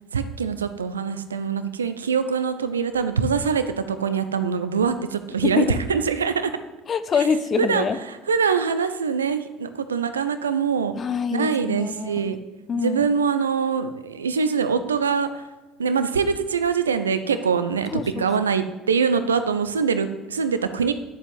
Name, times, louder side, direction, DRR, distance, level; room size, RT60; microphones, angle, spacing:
voice 1, 0.1-6.5 7.6-7.9 8.3-10.9 11.3-12.4 12.7-15.5 15.8-17.9 18.2-20.9, right 6 dB, 85° right, 11 dB, 0.7 m, -23 dB
voice 2, 5.4-5.8 6.9-8.0 10.9-12.4 12.7-13.1 17.9-18.3, left 6 dB, 40° left, 12 dB, 1.0 m, -25 dB
11.0 x 7.2 x 7.8 m, 1.1 s
figure-of-eight pair, 60°, 0 cm